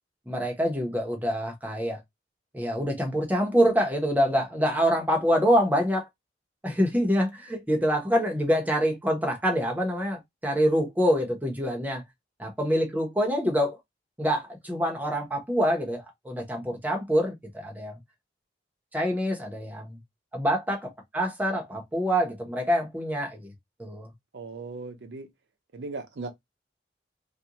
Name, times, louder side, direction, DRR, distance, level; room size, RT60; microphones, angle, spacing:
voice 1, 0.3-2.0 2.5-6.1 6.6-12.0 12.4-13.8 14.2-18.0 18.9-20.0 20.3-23.5 23.8-24.1, equal, 10° right, 0.7 m, -26 dB
voice 2, 24.3-25.3 25.7-26.3, right 3 dB, 85° right, 0.6 m, -37 dB
2.4 x 2.2 x 2.8 m
head